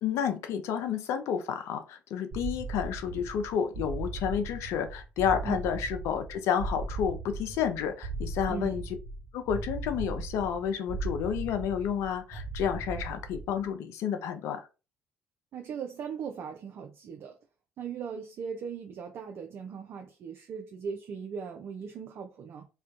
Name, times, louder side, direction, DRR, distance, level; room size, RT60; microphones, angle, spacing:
voice 1, 0.0-8.8 9.3-14.6, left 8 dB, 65° left, 0.4 m, -30 dB
sound 1, 2.3-13.7, right 3 dB, 35° right, 0.8 m, -38 dB
voice 2, 8.5-8.8 15.5-17.4 17.8-22.7, right 6 dB, 55° right, 0.4 m, -39 dB
2.3 x 2.1 x 2.5 m
hypercardioid pair, 50°, 5 cm